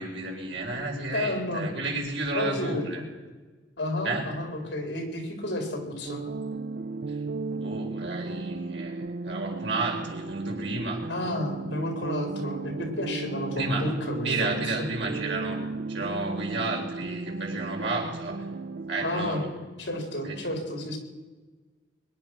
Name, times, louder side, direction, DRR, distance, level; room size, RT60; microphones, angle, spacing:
voice 1, 0.0-3.0 4.0-4.3 7.1-7.2 7.6-11.1 13.5-13.8 14.2-15.6 15.9-18.5 18.9-19.5 20.2-20.4, right 3 dB, 85° right, 0 dB, 4.1 m, -32 dB
voice 2, 1.1-1.7 2.3-3.0 3.8-6.3 11.1-14.6 19.0-19.4 19.8-21.0, left 1 dB, 75° left, 3 dB, 4.1 m, -31 dB
sound 1, 6.0-19.3, right 3 dB, 65° right, 0.5 m, -35 dB
22.5 x 10.5 x 6.0 m, 1.3 s
head